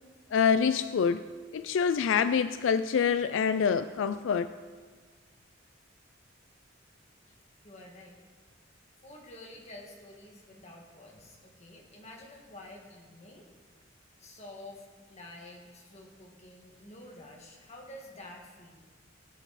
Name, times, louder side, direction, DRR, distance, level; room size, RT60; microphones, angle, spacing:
voice 1, 0.3-1.2 1.5-4.5, left 6 dB, 80° left, 13 dB, 0.3 m, -26 dB
voice 2, 7.6-8.2 9.0-13.5 14.2-18.7, left 1 dB, 35° left, 0 dB, 1.9 m, -49 dB
17.5 x 8.1 x 4.1 m, 1.5 s
head